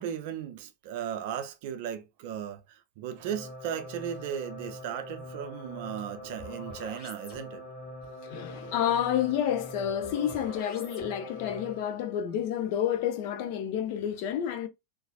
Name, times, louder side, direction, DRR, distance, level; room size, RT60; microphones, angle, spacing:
voice 1, 0.0-7.6, right 9 dB, 50° right, 0.5 m, -36 dB
sound 1, 3.2-12.0, left 1 dB, 30° left, 1.1 m, -43 dB
voice 2, 8.2-14.7, left 9 dB, 45° left, 0.5 m, -29 dB
3.9 x 2.3 x 2.2 m
figure-of-eight pair, 90°, 0 cm